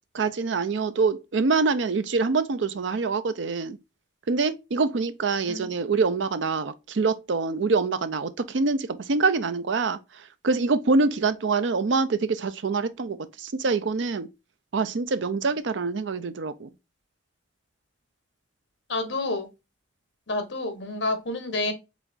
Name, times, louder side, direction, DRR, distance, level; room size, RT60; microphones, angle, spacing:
voice 1, 0.1-3.8 4.3-14.3 14.7-16.7, right 4 dB, 70° right, 0.5 m, -25 dB
voice 2, 18.9-19.5 20.3-21.7, left 2 dB, 70° left, 1.2 m, -29 dB
5.0 x 3.5 x 2.6 m
head